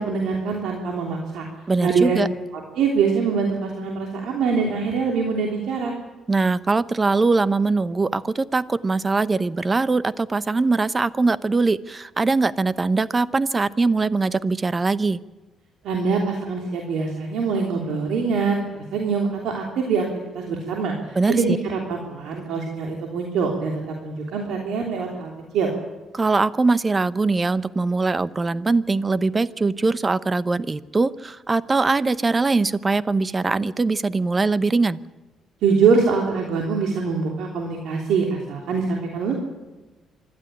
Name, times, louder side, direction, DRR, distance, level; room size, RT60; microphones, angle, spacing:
voice 1, 0.0-1.5 1.8-2.2 2.7-5.9 15.8-18.6 18.9-20.1 20.3-25.7 35.6-39.3, right 5 dB, 80° right, 1 dB, 3.1 m, -24 dB
voice 2, 1.7-2.3 6.3-15.2 21.1-21.6 26.1-35.0, right 3 dB, 25° right, 16 dB, 0.8 m, -22 dB
25.5 x 12.5 x 9.9 m, 1.2 s
cardioid pair, 90°, 0 cm